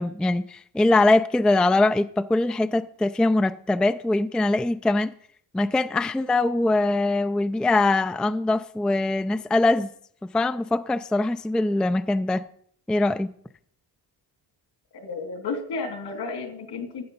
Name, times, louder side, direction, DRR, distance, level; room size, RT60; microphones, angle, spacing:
voice 1, 0.0-5.1 5.5-9.9 10.3-12.4 12.9-13.3, left 2 dB, ahead, 0.3 m, -22 dB
voice 2, 14.9-17.0, left 4 dB, 70° left, 2.4 m, -32 dB
12.5 x 7.7 x 5.3 m
cardioid pair, 80°, 42 cm